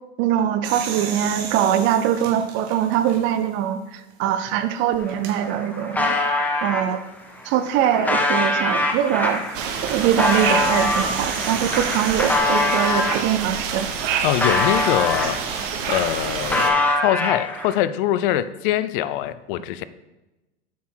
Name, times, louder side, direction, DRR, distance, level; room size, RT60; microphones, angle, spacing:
voice 1, 0.2-6.2 6.6-7.0 7.4-13.9, right 10 dB, 35° right, 10 dB, 0.5 m, -22 dB
sound 1, 0.6-3.6 4.1-4.2 5.1-5.4 7.5-12.4, right 6 dB, 70° right, 1.2 m, -36 dB
sound 2, 4.9-5.0 5.3-6.8 7.4-13.2 13.7-15.6 15.9-17.8, left 2 dB, 5° left, 0.6 m, -24 dB
sound 3, 9.5-16.7, right 7 dB, 55° right, 0.9 m, -27 dB
voice 2, 14.2-19.8, left 12 dB, 55° left, 14 dB, 0.4 m, -23 dB
7.1 x 4.3 x 4.5 m, 1.0 s
supercardioid pair, 130°, 33 cm